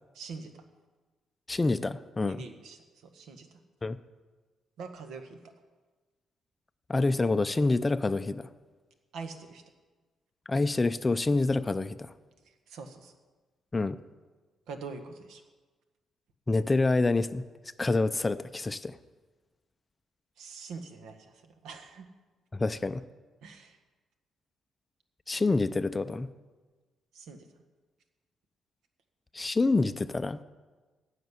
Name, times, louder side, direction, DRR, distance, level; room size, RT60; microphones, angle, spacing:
voice 1, 0.1-0.6 2.3-3.6 4.8-5.4 9.1-9.6 12.7-13.1 14.7-15.4 20.4-22.1 23.4-23.8 27.1-27.5, right 4 dB, 80° right, 7 dB, 1.6 m, -44 dB
voice 2, 1.5-2.4 3.8-4.0 6.9-8.5 10.5-12.1 13.7-14.0 16.5-17.4 17.8-19.0 22.5-23.0 25.3-26.3 29.3-30.4, left 3 dB, 15° left, 12 dB, 0.4 m, -27 dB
15.5 x 6.6 x 9.6 m, 1.3 s
cardioid pair, 145°, 0 cm